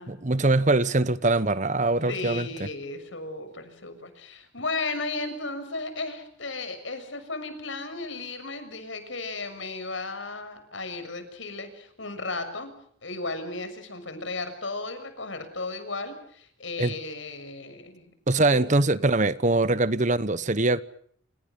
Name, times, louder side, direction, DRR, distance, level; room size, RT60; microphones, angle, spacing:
voice 1, 0.1-2.5 16.8-16.9 18.3-20.8, right 2 dB, 35° right, 1.0 m, -23 dB
voice 2, 2.1-12.7 13.0-18.1 18.5-18.6, left 3 dB, 65° left, 6.7 m, -35 dB
28.5 x 28.5 x 5.4 m
head